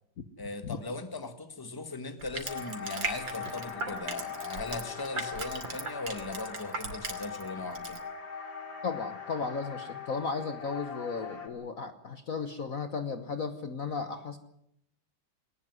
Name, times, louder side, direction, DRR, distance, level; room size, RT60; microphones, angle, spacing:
voice 1, 0.4-8.0, left 3 dB, 10° left, 9 dB, 1.6 m, -39 dB
Crushing, 2.2-7.5 7.7-8.0, right 3 dB, 80° right, 3.5 m, -37 dB
sound 1, 2.5-11.5, left 6 dB, 80° left, 3.5 m, -41 dB
voice 2, 8.8-14.4, left 5 dB, 50° left, 9 dB, 1.5 m, -35 dB
19.5 x 19.0 x 9.6 m, 0.76 s
omnidirectional pair, 2.1 m